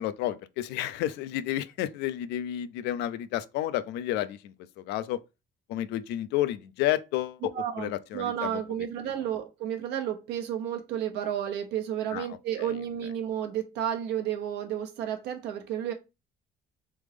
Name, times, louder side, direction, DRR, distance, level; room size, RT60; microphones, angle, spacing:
voice 1, 0.0-4.5 4.9-5.2 5.7-8.6 12.1-12.3, left 13 dB, 85° left, 0.4 m, -31 dB
voice 2, 7.5-15.9, right 10 dB, 85° right, 0.9 m, -32 dB
3.6 x 3.5 x 3.4 m
cardioid pair, 110°, 17 cm